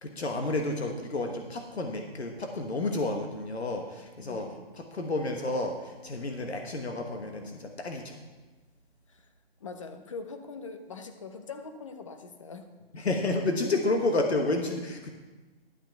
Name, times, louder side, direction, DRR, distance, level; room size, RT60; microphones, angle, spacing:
voice 1, 0.0-4.5 4.9-8.2 12.9-15.1, left 2 dB, 90° left, 4 dB, 1.3 m, -30 dB
voice 2, 4.2-4.6 9.1-9.3 9.6-12.7, left 4 dB, 30° left, 7 dB, 0.7 m, -42 dB
12.0 x 8.2 x 4.6 m, 1.2 s
hypercardioid pair, 160°, 31 cm